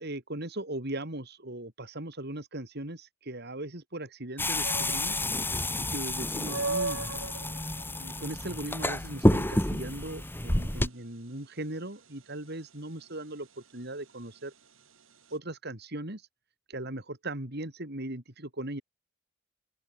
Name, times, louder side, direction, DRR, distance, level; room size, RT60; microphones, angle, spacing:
voice 1, 0.0-5.2 5.8-7.0 8.0-14.5 15.3-16.2 16.7-18.8, right 1 dB, 55° right, 4.3 m, -38 dB
sound 1, 4.4-10.9, left 1 dB, 10° left, 3.9 m, -29 dB
sound 2, 4.6-15.4, right 3 dB, 85° right, 4.7 m, -40 dB
open air
head